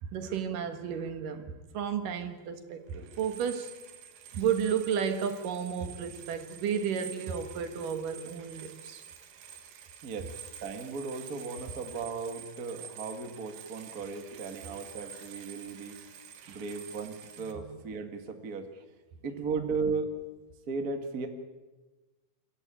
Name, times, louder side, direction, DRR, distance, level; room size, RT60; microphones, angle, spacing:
voice 1, 0.0-3.7 4.3-9.0 16.4-16.6, right 7 dB, 65° right, 7 dB, 2.9 m, -32 dB
sound 1, 2.2-2.3 2.7-17.5, right 7 dB, 85° right, 3.8 m, -48 dB
voice 2, 10.6-16.0 16.5-18.7 19.2-20.1 20.7-21.3, right 4 dB, 40° right, 5 dB, 1.3 m, -36 dB
28.5 x 14.5 x 8.9 m, 1.2 s
omnidirectional pair, 4.4 m